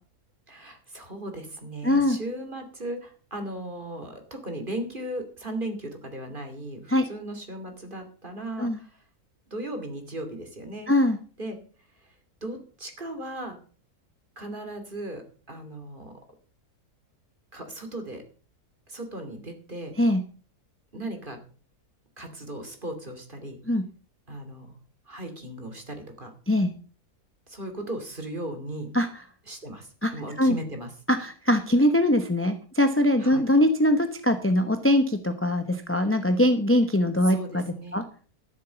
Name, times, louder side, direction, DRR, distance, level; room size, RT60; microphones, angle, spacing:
voice 1, 0.5-8.9 9.5-10.9 11.4-11.6 12.4-13.6 14.4-16.1 17.5-18.2 18.9-19.9 20.9-21.4 22.2-23.6 24.3-24.8 25.1-26.3 27.5-28.9 29.5-30.9 33.2-33.5 37.2-38.0, right 1 dB, 30° right, 6 dB, 2.8 m, -37 dB
voice 2, 1.8-2.2 6.9-7.0 8.6-8.8 10.9-11.2 20.0-20.2 23.7-23.8 26.5-26.7 28.9-29.1 30.0-30.1 30.4-30.6 31.1-37.6 37.9-38.0, left 1 dB, 10° left, 8 dB, 0.8 m, -22 dB
13.5 x 7.5 x 6.9 m, 0.41 s
omnidirectional pair, 1.7 m